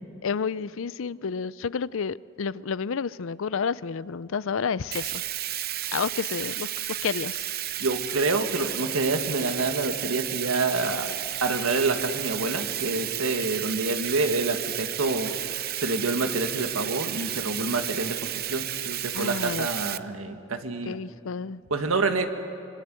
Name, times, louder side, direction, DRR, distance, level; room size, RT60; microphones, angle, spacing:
voice 1, 0.2-5.2 5.9-6.7 7.0-7.5 19.1-19.7 20.9-21.6, left 6 dB, 70° left, 18 dB, 0.5 m, -30 dB
Bathtub (filling or washing), 4.9-20.0, right 13 dB, 50° right, 0.6 m, -32 dB
voice 2, 7.8-11.1 11.4-21.0 21.7-22.3, right 3 dB, 85° right, 6 dB, 1.8 m, -27 dB
26.0 x 24.0 x 7.8 m, 2.9 s
head